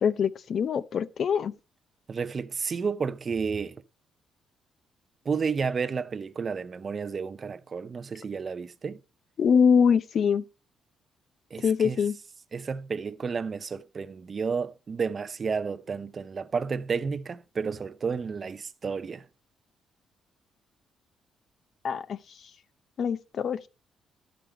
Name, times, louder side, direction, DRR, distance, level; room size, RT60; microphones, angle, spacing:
voice 1, 0.0-1.5 9.4-10.4 11.6-12.2 21.8-22.2 23.0-23.6, left 6 dB, 60° left, 0.6 m, -23 dB
voice 2, 2.1-3.8 5.3-9.0 11.5-12.0 12.5-19.2, right 5 dB, 40° right, 0.6 m, -31 dB
12.0 x 5.2 x 4.3 m
cardioid pair, 90°, 0 cm